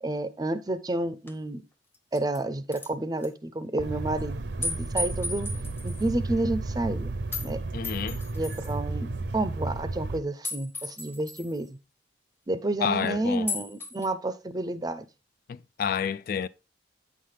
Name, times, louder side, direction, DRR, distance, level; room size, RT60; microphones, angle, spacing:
voice 1, 0.0-1.6 2.1-5.5 5.8-7.1 7.4-7.6 8.3-9.1 9.3-11.8 12.5-15.0, right 2 dB, 20° right, 0.5 m, -30 dB
sound 1, 1.3-1.4 1.9-2.4 2.7-2.9 3.2-3.3 4.6-6.1 7.3-7.5 7.8-8.7 10.4-11.6 13.5-14.1, left 2 dB, 15° left, 0.8 m, -35 dB
sound 2, 3.8-10.2, right 2 dB, 70° right, 0.6 m, -33 dB
voice 2, 7.7-8.2 12.8-13.5 15.5-16.5, left 7 dB, 55° left, 0.3 m, -29 dB
8.4 x 5.7 x 3.3 m
head